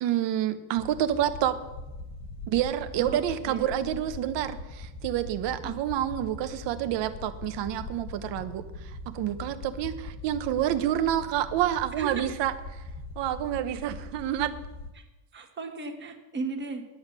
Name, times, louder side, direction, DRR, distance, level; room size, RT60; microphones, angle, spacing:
voice 1, 0.0-1.6 2.5-12.8 13.2-14.5, right 11 dB, 60° right, 10 dB, 1.0 m, -28 dB
sound 1, 0.8-14.9, left 2 dB, 45° left, 1.2 m, -41 dB
voice 2, 15.3-16.9, right 4 dB, 25° right, 2 dB, 1.6 m, -36 dB
11.0 x 8.7 x 6.1 m, 1.1 s
cardioid pair, 160°, 48 cm